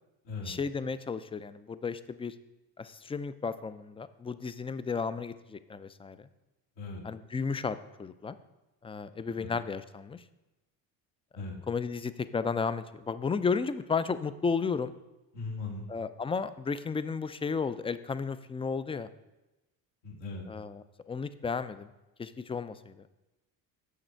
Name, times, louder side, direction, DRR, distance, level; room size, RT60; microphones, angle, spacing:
voice 1, 0.5-2.3 2.8-6.3 7.0-8.4 8.8-10.2 11.7-14.9 15.9-19.1 20.5-21.9 22.2-22.9, left 5 dB, 15° left, 13 dB, 0.3 m, -33 dB
voice 2, 15.3-15.9 20.0-20.4, left 3 dB, 75° left, -1 dB, 2.2 m, -38 dB
6.6 x 6.1 x 4.5 m, 1.0 s
supercardioid pair, 75°, 43 cm